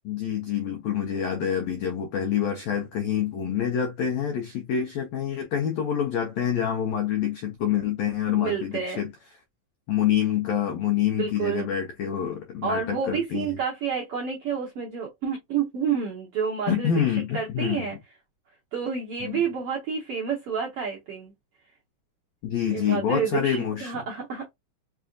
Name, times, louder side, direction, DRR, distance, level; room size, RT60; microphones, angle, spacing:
voice 1, 0.0-9.1 9.9-13.6 16.7-18.0 19.2-19.4 22.4-24.0, left 9 dB, 90° left, 1.5 m, -27 dB
voice 2, 8.3-9.0 11.2-11.7 12.6-16.9 17.3-18.0 18.7-21.3 22.7-24.5, right 6 dB, 75° right, 1.3 m, -29 dB
5.4 x 2.6 x 2.3 m
omnidirectional pair, 4.1 m